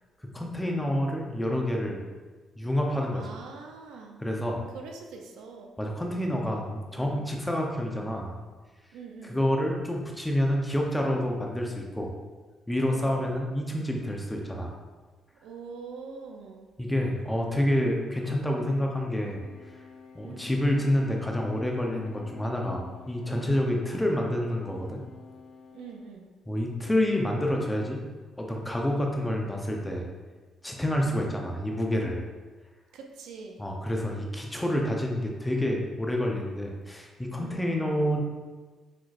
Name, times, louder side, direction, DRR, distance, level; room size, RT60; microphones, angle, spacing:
voice 1, 0.3-2.0 2.6-3.2 4.2-4.6 5.8-8.4 9.2-12.1 12.7-14.7 16.8-19.4 20.1-25.0 26.5-28.0 28.4-30.1 30.6-32.2 33.6-38.2, left 1 dB, 10° left, 0 dB, 0.7 m, -28 dB
voice 2, 3.1-4.2 4.7-5.7 6.9-7.2 8.9-9.4 12.9-13.4 15.4-16.7 18.6-18.9 20.2-20.5 25.7-26.3 31.0-31.2 32.9-33.6 37.4-37.8, right 5 dB, 90° right, 2 dB, 0.6 m, -44 dB
sound 1, 19.4-26.1, left 5 dB, 45° left, 0.5 m, -48 dB
6.3 x 3.0 x 2.5 m, 1.3 s
cardioid pair, 90°, 0 cm